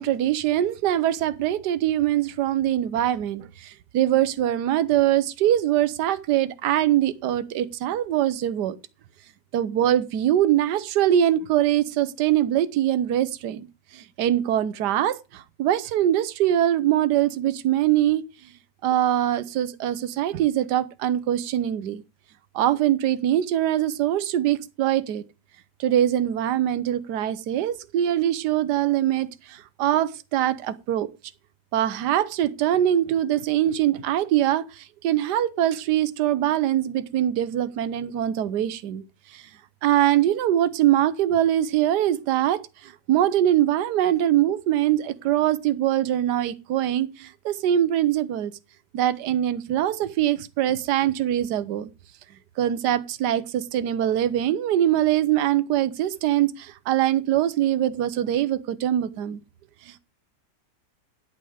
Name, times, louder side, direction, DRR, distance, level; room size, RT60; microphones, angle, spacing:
voice 1, 0.0-8.8 9.5-13.7 13.9-18.2 18.8-22.0 22.5-25.2 25.8-31.1 31.7-39.0 39.3-39.4 39.8-48.5 48.9-51.9 52.6-59.4 59.9-60.0, right 12 dB, 75° right, 1.4 m, -23 dB
10.5 x 8.6 x 4.9 m
omnidirectional pair, 1.9 m